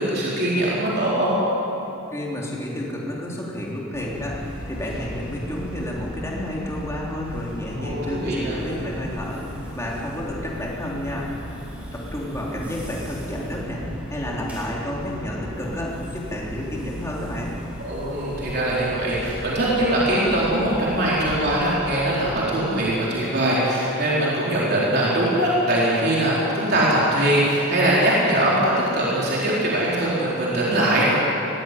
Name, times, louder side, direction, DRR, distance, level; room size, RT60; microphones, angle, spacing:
voice 1, 0.0-1.4 7.8-8.6 17.8-31.1, right 1 dB, 45° right, -7 dB, 4.1 m, -21 dB
voice 2, 2.1-11.3 11.7-17.5, left 1 dB, 15° left, -4 dB, 3.4 m, -30 dB
sound 1, 3.9-22.3, equal, 5° right, 5.1 m, -37 dB
20.0 x 15.5 x 9.4 m, 3.0 s
head